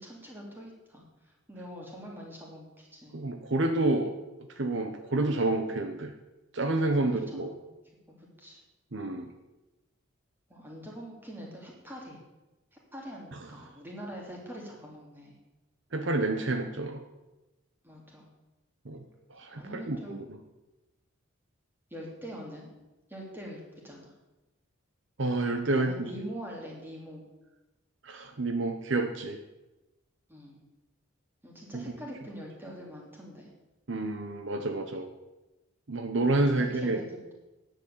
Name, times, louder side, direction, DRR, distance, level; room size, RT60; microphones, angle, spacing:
voice 1, 0.0-3.2 6.9-7.7 8.1-8.6 10.5-12.2 12.7-15.4 17.8-18.3 19.5-20.2 21.9-22.7 23.1-24.1 25.7-27.2 30.3-30.6 31.4-33.5 36.4-37.3, equal, 10° right, -2 dB, 3.1 m, -44 dB
voice 2, 3.1-4.1 4.6-6.1 6.5-7.5 8.9-9.3 15.9-17.0 18.8-19.0 19.3-20.2 25.2-26.1 28.0-29.4 31.7-31.8 33.9-35.1 35.9-37.0, right 2 dB, 60° right, 6 dB, 1.0 m, -29 dB
10.5 x 8.3 x 8.5 m, 1.0 s
head